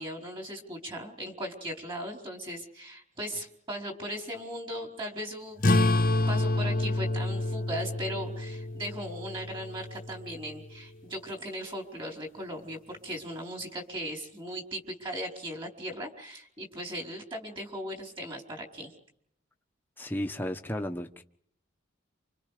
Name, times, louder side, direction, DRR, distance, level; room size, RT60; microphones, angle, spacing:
voice 1, 0.0-5.6 6.3-18.9, equal, 25° right, 4.6 m, -38 dB
sound 1, 5.6-10.7, left 2 dB, 45° left, 1.1 m, -28 dB
voice 2, 20.0-21.2, left 1 dB, 10° left, 1.2 m, -33 dB
29.0 x 26.5 x 5.1 m
head